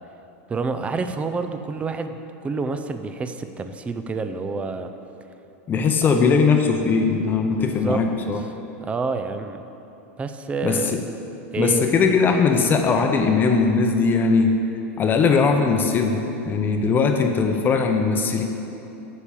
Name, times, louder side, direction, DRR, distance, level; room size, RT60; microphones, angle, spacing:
voice 1, 0.5-4.9 7.5-8.0 8.4-8.5 8.8-9.6 10.2-11.0 11.5-11.9, right 4 dB, 15° right, 8 dB, 0.5 m, -28 dB
voice 2, 5.7-8.4 10.6-11.0 11.6-14.5 15.0-16.2 16.5-18.4, left 4 dB, 25° left, 4 dB, 0.8 m, -19 dB
8.2 x 6.8 x 7.3 m, 2.9 s
supercardioid pair, 120°, 7 cm